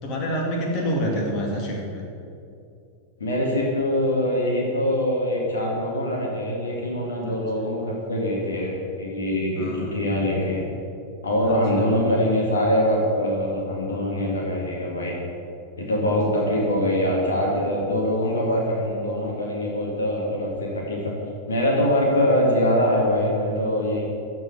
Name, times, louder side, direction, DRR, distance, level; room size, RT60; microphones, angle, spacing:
voice 1, 0.0-2.0 7.2-7.7 9.6-10.0 11.4-11.9 16.4-16.5, equal, 40° left, -1 dB, 2.2 m, -28 dB
voice 2, 3.2-10.6 11.2-15.1 15.8-21.1 21.5-24.0, left 1 dB, 70° left, -2 dB, 2.1 m, -23 dB
13.5 x 4.8 x 8.1 m, 2.6 s
figure-of-eight pair, 90°, 0 cm